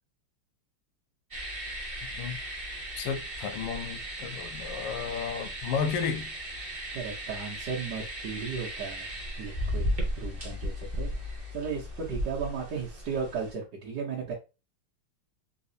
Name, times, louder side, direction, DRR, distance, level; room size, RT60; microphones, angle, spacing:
sound 1, 1.3-13.5, equal, 45° right, 0.4 m, -36 dB
voice 1, 3.0-6.3, left 6 dB, 85° left, 1.5 m, -33 dB
voice 2, 6.9-9.1 9.4-9.9 10.2-14.3, right 5 dB, 60° right, 1.1 m, -35 dB
4.0 x 2.3 x 2.6 m
omnidirectional pair, 2.4 m